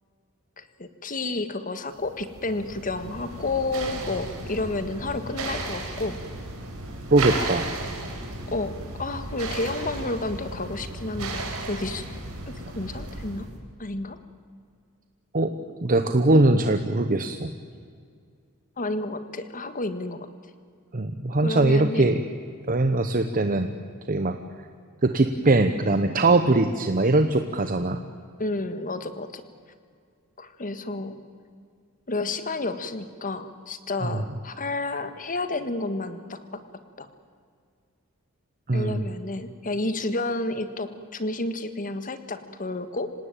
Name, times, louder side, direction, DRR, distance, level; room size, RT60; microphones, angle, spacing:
voice 1, 0.6-6.2 8.5-8.7 9.0-12.0 12.5-13.5 13.8-14.2 18.8-20.3 21.4-22.1 28.4-29.4 30.4-31.2 32.1-36.6 37.0-37.1 38.7-43.1, left 2 dB, 40° left, 10 dB, 1.6 m, -30 dB
sound 1, 2.0-13.5, right 2 dB, 80° right, 4.4 m, -34 dB
voice 2, 7.1-7.7 15.3-15.5 15.8-17.5 20.9-22.2 22.7-23.7 24.1-24.4 25.0-28.0 34.0-34.2 38.7-39.1, right 2 dB, 40° right, 8 dB, 0.9 m, -21 dB
26.5 x 18.5 x 9.1 m, 2.2 s
head